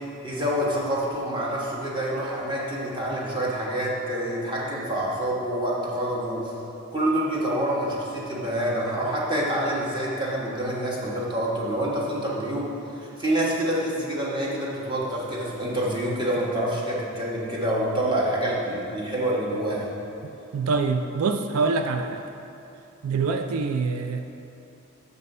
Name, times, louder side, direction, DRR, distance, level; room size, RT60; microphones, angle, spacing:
voice 1, 0.2-6.5 6.9-12.7 12.9-19.9, right 1 dB, 20° right, -5 dB, 1.3 m, -27 dB
voice 2, 20.5-22.2 23.0-24.3, right 4 dB, 90° right, 7 dB, 0.4 m, -25 dB
6.8 x 5.4 x 5.4 m, 2.9 s
head